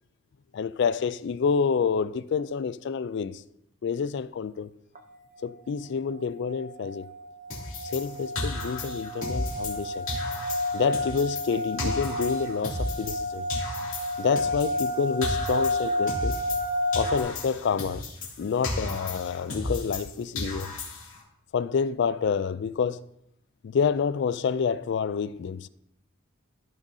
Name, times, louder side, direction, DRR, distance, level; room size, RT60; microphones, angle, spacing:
voice 1, 0.5-3.4 3.8-4.7 5.4-7.1 7.8-10.1 10.7-13.5 14.2-16.3 17.0-18.0 18.4-20.7 21.5-23.0 23.6-25.7, left 6 dB, 60° left, 0.3 m, -28 dB
sound 1, 4.9-5.0 5.4-5.8 6.2-17.2, left 1 dB, 40° right, 0.7 m, -31 dB
sound 2, 7.5-9.8 10.1-13.2 13.5-16.7 16.9-20.1 20.4-21.2, left 2 dB, 90° left, 2.6 m, -34 dB
14.0 x 6.1 x 2.7 m
head